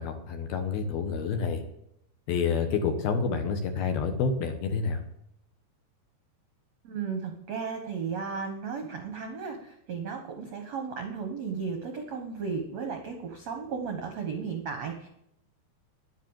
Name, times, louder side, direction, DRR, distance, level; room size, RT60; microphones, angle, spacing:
voice 1, 0.0-1.6 2.3-5.0, left 5 dB, 70° left, 6 dB, 2.6 m, -28 dB
voice 2, 6.8-15.1, right 5 dB, 70° right, 4 dB, 1.6 m, -35 dB
10.5 x 10.5 x 7.3 m, 0.77 s
omnidirectional pair, 5.3 m